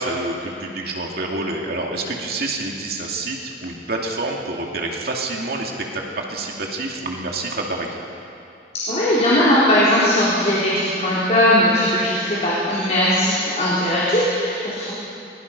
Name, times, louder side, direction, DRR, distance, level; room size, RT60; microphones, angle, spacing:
voice 1, 0.0-8.0, right 2 dB, 60° right, 0 dB, 2.6 m, -27 dB
voice 2, 8.7-14.9, left 1 dB, 40° left, -8 dB, 4.1 m, -19 dB
23.0 x 20.5 x 5.5 m, 2.7 s
head